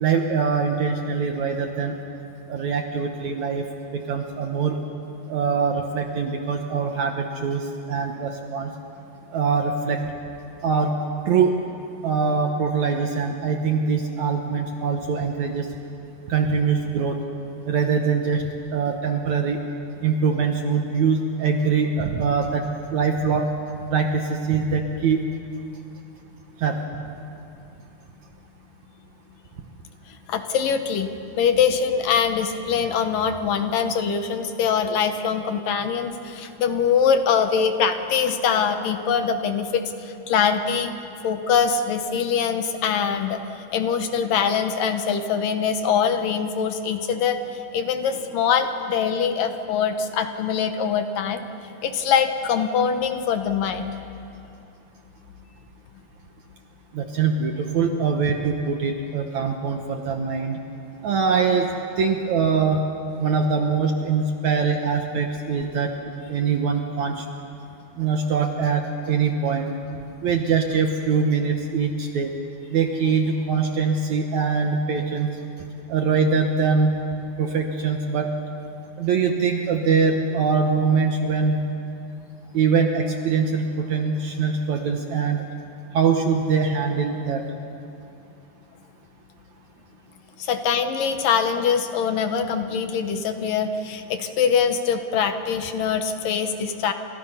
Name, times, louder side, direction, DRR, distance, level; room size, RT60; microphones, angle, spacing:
voice 1, 0.0-1.9 2.5-3.7 3.9-4.8 5.3-8.7 9.3-10.0 10.6-10.9 11.3-11.6 12.0-15.7 16.3-17.2 17.7-18.4 18.7-19.6 20.0-22.6 22.9-23.5 23.9-25.2 26.6-26.8 56.9-60.6 61.0-61.7 62.0-62.8 63.2-65.9 66.3-67.2 68.0-69.7 70.2-72.3 72.7-75.3 75.9-76.9 77.4-78.3 79.0-81.7 82.5-85.5 85.9-87.4, right 5 dB, 65° right, 4 dB, 2.0 m, -23 dB
voice 2, 30.1-31.1 31.4-40.9 41.2-51.4 51.8-53.9 90.4-96.9, left 7 dB, 70° left, 7 dB, 2.5 m, -23 dB
29.0 x 27.5 x 5.7 m, 2.7 s
omnidirectional pair, 4.5 m